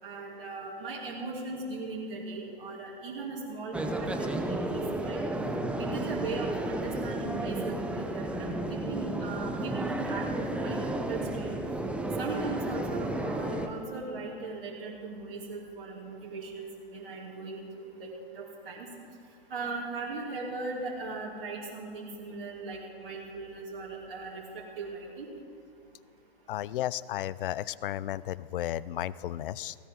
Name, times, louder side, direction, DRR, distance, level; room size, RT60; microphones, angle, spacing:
voice 1, 0.0-5.2 5.8-11.5 12.2-18.1 18.3-18.9 19.5-25.3, right 3 dB, 65° right, -4 dB, 2.9 m, -39 dB
sound 1, 3.7-13.7, right 1 dB, 5° right, 0.8 m, -32 dB
voice 2, 26.5-29.8, left 13 dB, 65° left, 19 dB, 0.5 m, -33 dB
18.0 x 16.5 x 3.8 m, 2.4 s
hypercardioid pair, 120°, 29 cm